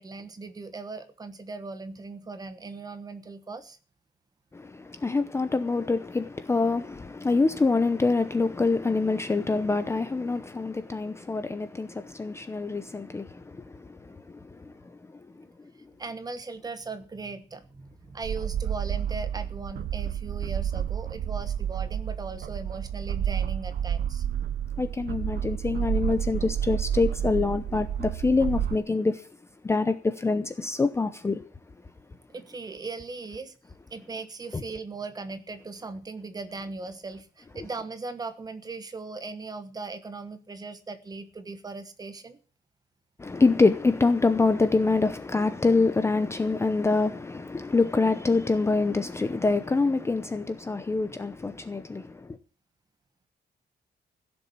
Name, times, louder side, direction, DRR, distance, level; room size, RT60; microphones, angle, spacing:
voice 1, 0.0-3.8 16.0-24.3 32.3-33.5 33.9-42.4, right 3 dB, 20° right, 1.2 m, -38 dB
voice 2, 4.5-14.7 24.8-29.2 29.6-31.4 43.2-52.4, left 3 dB, 15° left, 0.7 m, -25 dB
sound 1, 18.2-28.8, right 9 dB, 60° right, 0.8 m, -30 dB
16.0 x 7.0 x 8.6 m
cardioid pair, 175°, 18 cm